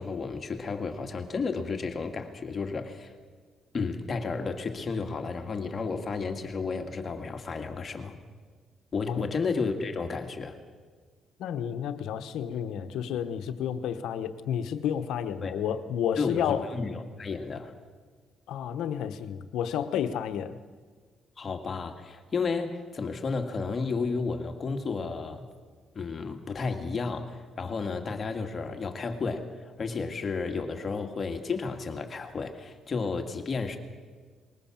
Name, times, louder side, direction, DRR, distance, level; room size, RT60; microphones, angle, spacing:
voice 1, 0.0-3.1 3.7-8.2 8.9-10.6 15.4-15.5 16.2-17.7 21.4-25.5 26.0-29.5 29.8-33.8, left 4 dB, 40° left, 5 dB, 2.0 m, -32 dB
voice 2, 11.4-16.7 18.5-20.6, left 9 dB, 85° left, 11 dB, 1.1 m, -31 dB
21.0 x 18.5 x 7.4 m, 1.5 s
cardioid pair, 90°, 0 cm